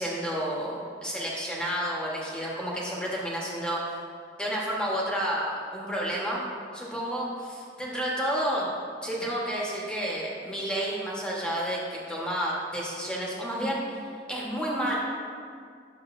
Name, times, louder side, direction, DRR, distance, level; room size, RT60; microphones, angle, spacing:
voice 1, 0.0-3.8 4.4-6.4 6.7-8.7 9.0-14.0 14.3-15.0, equal, 5° left, -5 dB, 1.3 m, -30 dB
10.0 x 7.0 x 2.6 m, 2.2 s
head